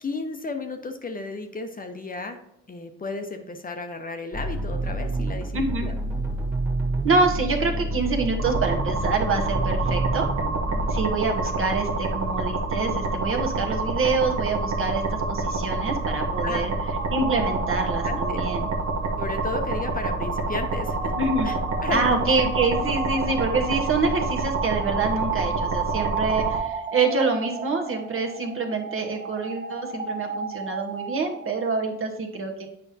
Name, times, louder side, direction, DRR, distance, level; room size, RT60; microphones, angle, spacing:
voice 1, 0.0-2.4 2.7-5.5 5.8-5.9 16.4-16.6 17.4-17.5 18.0-18.4 19.2-21.1 21.4-22.0, left 3 dB, 30° left, 6 dB, 0.7 m, -33 dB
sound 1, 4.3-11.1, right 2 dB, 5° right, 1.5 m, -28 dB
voice 2, 5.5-5.8 7.0-10.3 10.9-16.7 17.1-18.7 21.2-21.5 21.9-32.7, right 3 dB, 45° right, 4 dB, 1.2 m, -26 dB
sound 2, 8.4-26.6, right 3 dB, 70° right, 1.1 m, -27 dB
sound 3, 17.0-31.7, right 5 dB, 25° right, 0.8 m, -34 dB
8.1 x 5.1 x 2.8 m, 0.77 s
cardioid pair, 90°, 30 cm